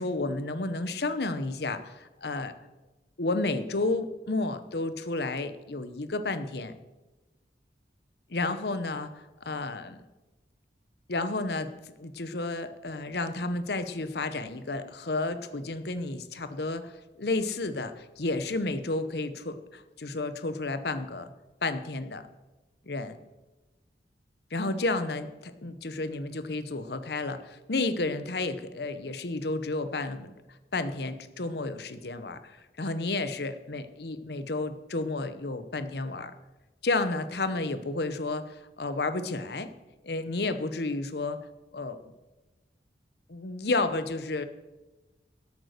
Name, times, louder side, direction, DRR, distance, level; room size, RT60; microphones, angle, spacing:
voice 1, 0.0-2.5 3.2-6.7 8.3-10.0 11.1-11.7 12.0-16.9 17.2-21.3 21.6-22.2 22.9-23.2 24.5-30.3 30.7-36.3 36.8-39.7 40.0-41.4 41.7-42.0 43.3-44.5, left 2 dB, 65° left, 11 dB, 0.9 m, -31 dB
13.0 x 8.4 x 6.6 m, 1.1 s
head